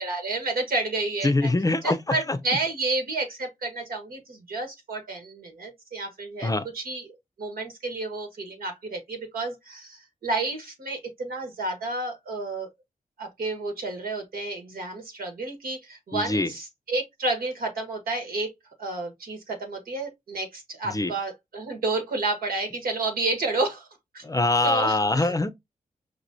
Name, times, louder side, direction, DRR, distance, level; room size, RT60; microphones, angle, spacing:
voice 1, 0.0-1.5 1.8-12.7 13.2-18.5 18.8-23.9 24.1-24.2 24.6-25.3, right 2 dB, 80° right, 1.4 m, -30 dB
voice 2, 1.2-2.0 2.3-2.4 6.4-6.7 16.1-16.5 20.8-21.1 24.2-25.5, left 2 dB, 25° left, 0.5 m, -23 dB
5.1 x 2.9 x 2.6 m
cardioid pair, 55°, 15 cm